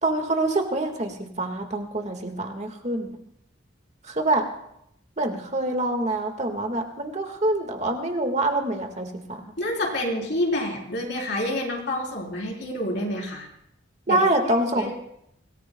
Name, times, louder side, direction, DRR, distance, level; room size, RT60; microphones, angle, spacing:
voice 1, 0.0-3.2 4.1-4.4 5.2-9.4 14.1-14.9, right 2 dB, 35° right, 4 dB, 1.7 m, -25 dB
voice 2, 9.6-13.5 14.1-14.2 14.6-14.9, left 1 dB, 60° left, -1 dB, 3.8 m, -28 dB
25.0 x 19.0 x 2.3 m, 0.76 s
head